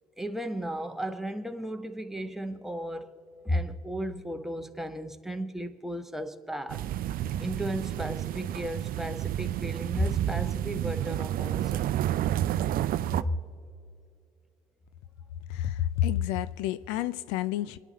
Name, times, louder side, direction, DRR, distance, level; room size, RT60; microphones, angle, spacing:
voice 1, 0.2-3.1 3.4-6.8 7.4-11.9 13.2-13.4, equal, ahead, 1.4 m, -34 dB
sound 1, 6.7-13.2, right 12 dB, 55° right, 0.5 m, -30 dB
voice 2, 15.5-17.8, left 12 dB, 70° left, 0.6 m, -29 dB
29.0 x 10.5 x 4.2 m
hypercardioid pair, 55°, 18 cm